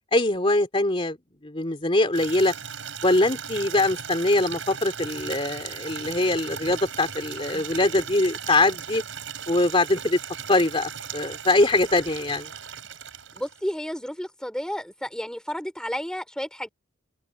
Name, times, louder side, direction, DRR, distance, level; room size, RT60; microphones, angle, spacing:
voice 1, 0.1-1.2 1.4-2.5 3.0-9.0 9.5-10.2 10.5-12.5, left 2 dB, 25° left, 3.0 m, -23 dB
Water tap faucet / Liquid, 2.1-13.7, right 7 dB, 65° right, 7.7 m, -37 dB
voice 2, 13.3-16.7, equal, 5° left, 4.2 m, -32 dB
head